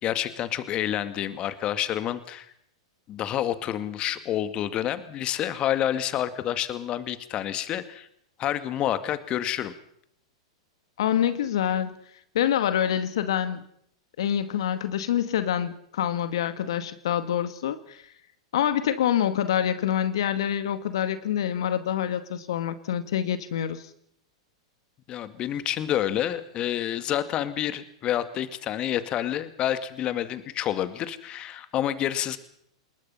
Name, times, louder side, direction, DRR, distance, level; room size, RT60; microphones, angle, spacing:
voice 1, 0.0-2.5 3.1-8.1 8.4-9.7 25.1-32.4, left 11 dB, 35° left, 12 dB, 2.0 m, -28 dB
voice 2, 11.0-12.0 12.3-13.6 14.2-18.0 18.5-23.9, left 10 dB, 65° left, 11 dB, 1.9 m, -26 dB
28.0 x 21.0 x 5.7 m, 0.69 s
hypercardioid pair, 100°, 3 cm